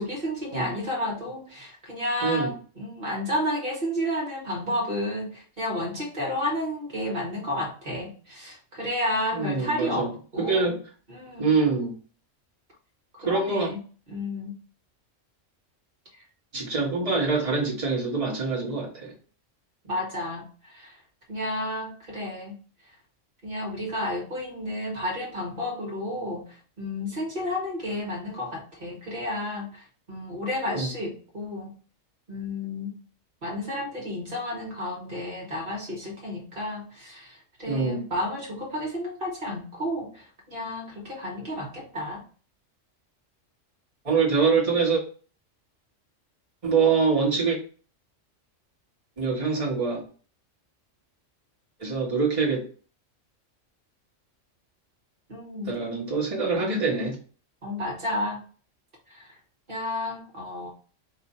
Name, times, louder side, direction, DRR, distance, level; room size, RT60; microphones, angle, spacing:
voice 1, 0.0-10.7 11.1-11.5 13.2-13.8 14.1-14.5 19.8-21.0 21.3-22.5 23.4-26.5 26.8-31.7 32.3-32.9 33.4-42.2 55.3-55.7 56.5-56.9 57.6-58.4 59.1-59.3 59.7-60.7, left 1 dB, 45° right, -2 dB, 1.4 m, -31 dB
voice 2, 9.3-10.8 11.4-12.0 13.2-13.7 16.5-19.1 30.7-30.9 37.7-38.0 44.0-45.0 46.6-47.6 49.2-50.0 51.8-52.6 55.6-57.2, right 4 dB, 30° right, -4 dB, 1.3 m, -25 dB
4.7 x 2.4 x 4.1 m, 0.39 s
omnidirectional pair, 1.3 m